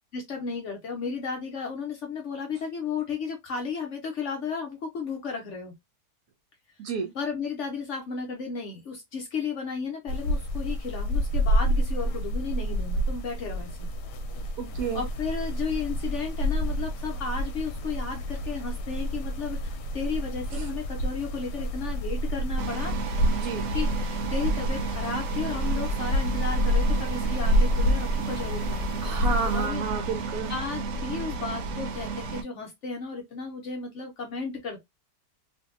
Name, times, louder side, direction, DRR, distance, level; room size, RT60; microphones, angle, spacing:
voice 1, 0.1-5.7 7.1-13.9 14.9-22.9 23.7-29.8 30.5-34.8, left 5 dB, 60° left, 0.8 m, -34 dB
voice 2, 6.8-7.1 14.6-15.0 20.5-20.7 23.4-23.6 29.0-30.5, right 6 dB, 70° right, 0.9 m, -31 dB
sound 1, 10.1-29.7, equal, 85° left, 1.2 m, -28 dB
sound 2, 22.6-32.4, right 3 dB, 85° right, 1.2 m, -32 dB
2.7 x 2.6 x 2.4 m
omnidirectional pair, 1.8 m